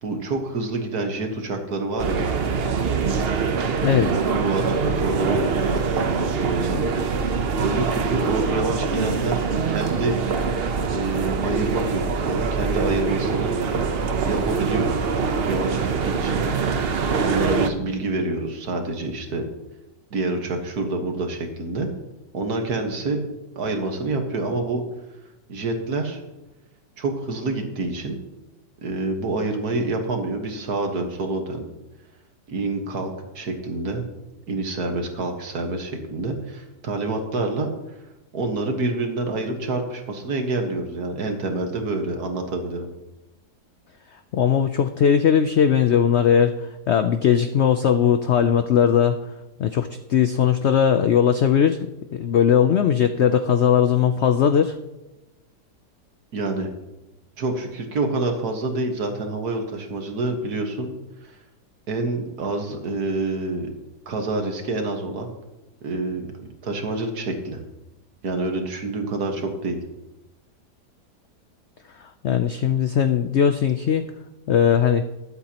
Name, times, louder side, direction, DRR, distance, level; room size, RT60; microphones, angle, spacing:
voice 1, 0.0-2.3 3.8-7.0 7.6-10.2 10.9-13.6 14.2-15.0 15.5-15.8 16.0-16.4 17.2-19.4 20.1-21.9 22.3-23.2 23.6-24.8 25.5-26.2 27.0-28.2 28.8-31.7 32.5-34.0 34.5-37.7 38.3-42.9 56.3-56.7 57.4-60.9 61.2-61.3 61.9-63.7 64.1-65.3 65.8-67.6 68.2-69.8, right 2 dB, 65° right, 4 dB, 1.9 m, -27 dB
sound 1, 2.0-17.7, right 5 dB, 50° right, 0.8 m, -24 dB
voice 2, 44.3-49.2 49.6-51.9 52.1-54.8 72.2-74.1 74.5-75.0, left 8 dB, 85° left, 9 dB, 0.6 m, -19 dB
21.0 x 8.1 x 2.9 m, 1.0 s
omnidirectional pair, 1.8 m